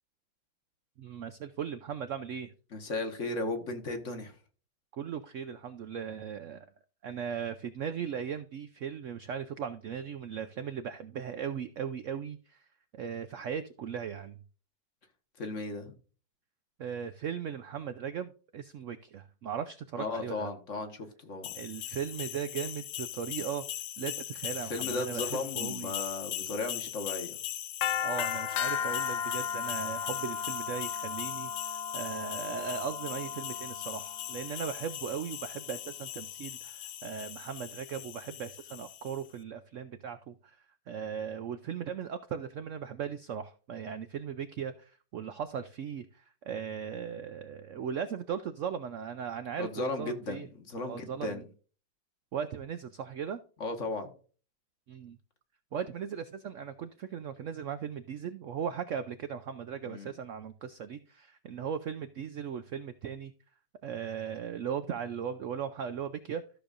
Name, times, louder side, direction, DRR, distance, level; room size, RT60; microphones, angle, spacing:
voice 1, 1.0-2.5 4.9-6.7 7.0-12.6 12.9-14.4 16.8-20.5 21.5-23.6 24.0-25.9 28.0-50.5 50.8-51.4 52.3-53.4 54.9-55.2 55.7-63.3 63.8-66.4, right 7 dB, 85° right, 0.6 m, -38 dB
voice 2, 2.7-4.3 15.4-15.9 20.0-21.5 24.7-27.4 49.6-51.4 53.6-54.1 59.8-60.1, left 2 dB, 45° left, 1.5 m, -36 dB
sound 1, 21.4-39.2, left 9 dB, 75° left, 1.2 m, -36 dB
13.5 x 6.9 x 2.5 m
omnidirectional pair, 2.0 m